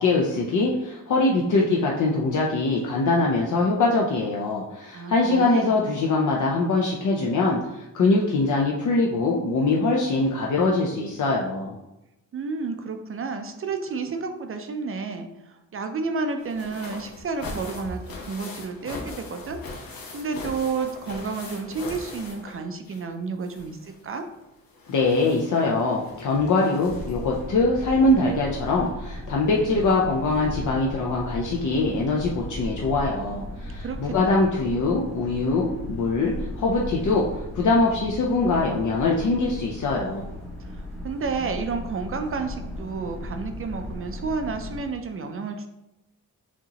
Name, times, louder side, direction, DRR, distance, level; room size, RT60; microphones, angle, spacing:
voice 1, 0.0-11.8 24.9-37.3 37.5-40.3, left 3 dB, 60° left, -2 dB, 0.6 m, -23 dB
voice 2, 4.9-5.8 12.3-24.3 33.8-34.4 40.6-45.7, right 4 dB, 40° right, 6 dB, 0.4 m, -31 dB
sound 1, 16.4-23.1 23.4-27.4 28.4-28.5 28.9-29.0, left 2 dB, 90° left, 1.1 m, -40 dB
sound 2, 26.8-44.8, left 1 dB, 20° left, 1.4 m, -37 dB
6.2 x 2.9 x 2.8 m, 0.91 s
wide cardioid pair, 160°, 34 cm